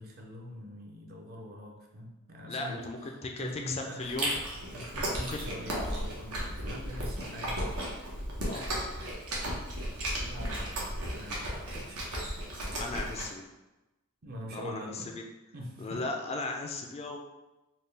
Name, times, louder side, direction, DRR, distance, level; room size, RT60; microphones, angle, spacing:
voice 1, 0.0-4.1 4.7-7.6 10.2-12.0 14.2-15.1 15.5-16.0, equal, 45° right, 0 dB, 0.6 m, -44 dB
voice 2, 2.5-4.3 5.2-5.4 8.4-8.6 12.8-13.5 14.5-15.2 15.8-17.2, left 3 dB, 30° left, 2 dB, 0.3 m, -36 dB
Chewing mastication, 4.0-13.2, right 1 dB, 85° right, 1.0 m, -35 dB
4.2 x 2.2 x 3.3 m, 1.0 s
head